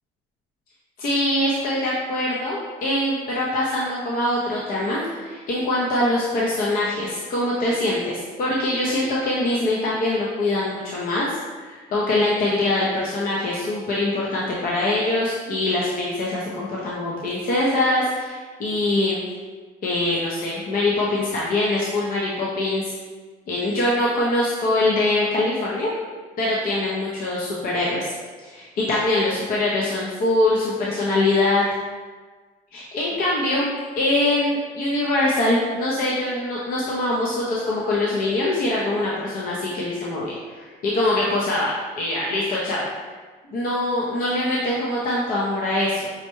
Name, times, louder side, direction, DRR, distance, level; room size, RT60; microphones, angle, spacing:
voice 1, 1.0-19.2 19.8-22.9 23.5-25.9 26.4-28.1 28.5-31.7 32.7-42.9 43.5-46.1, left 1 dB, 55° left, -5 dB, 0.7 m, -23 dB
5.5 x 2.2 x 3.0 m, 1.4 s
cardioid pair, 110°, 17 cm